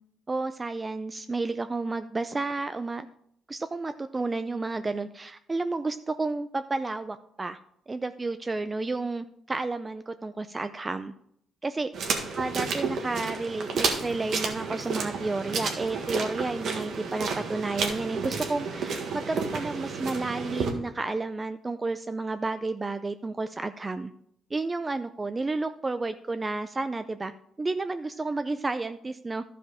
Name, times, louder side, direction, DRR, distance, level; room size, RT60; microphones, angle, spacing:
voice 1, 0.3-3.1 3.5-7.6 7.9-11.1 11.6-11.9 12.4-24.1 24.5-27.3 27.6-29.4, right 3 dB, 25° right, 10 dB, 0.4 m, -31 dB
sound 1, 11.9-20.7, right 4 dB, 70° right, 1.5 m, -31 dB
12.0 x 5.1 x 4.9 m, 0.72 s
cardioid pair, 90°, 0 cm